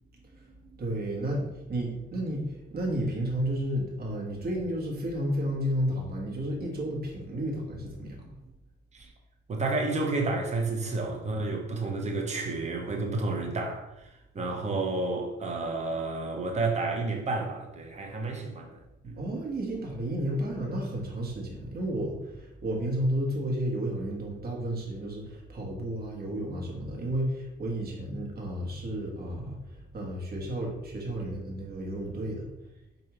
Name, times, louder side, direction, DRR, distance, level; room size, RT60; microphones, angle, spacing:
voice 1, 0.4-8.3 19.1-29.6 29.9-32.4, right 1 dB, 50° right, -2 dB, 1.2 m, -32 dB
voice 2, 9.5-18.8 19.0-19.2, right 3 dB, 35° right, 1 dB, 0.9 m, -31 dB
4.6 x 2.6 x 3.0 m, 0.95 s
cardioid pair, 90°, 20 cm